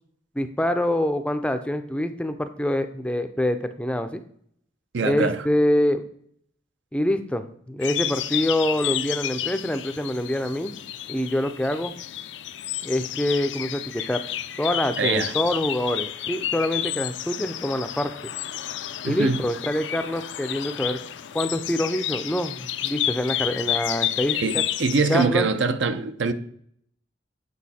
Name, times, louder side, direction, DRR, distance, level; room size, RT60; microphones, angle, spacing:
voice 1, 0.4-4.2 5.0-6.0 6.9-10.7 11.1-11.9 12.8-14.2 14.6-18.3 19.0-21.0 21.3-24.6 25.1-25.5, left 1 dB, 5° left, 0.4 m, -25 dB
voice 2, 4.9-5.4 15.0-15.3 19.0-19.4 24.3-26.3, right 4 dB, 80° right, 0.7 m, -23 dB
sound 1, 7.8-25.3, left 12 dB, 75° left, 0.4 m, -31 dB
8.2 x 4.8 x 4.2 m
head